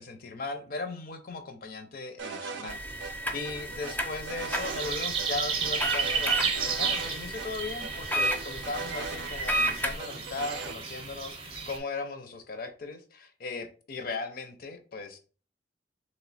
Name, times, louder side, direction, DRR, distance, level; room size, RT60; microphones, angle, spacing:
voice 1, 0.0-15.2, left 3 dB, 55° left, 0.6 m, -38 dB
sound 1, 2.2-2.7 3.0-3.1 3.4-4.9 5.2-5.3 5.6-7.1 7.4-7.5 7.8-9.6 10.0-10.8, right 5 dB, 80° right, 0.5 m, -39 dB
sound 2, 2.7-9.9, right 1 dB, 10° left, 0.5 m, -33 dB
sound 3, 4.5-11.8, right 5 dB, 30° right, 0.6 m, -33 dB
3.2 x 2.6 x 4.1 m
head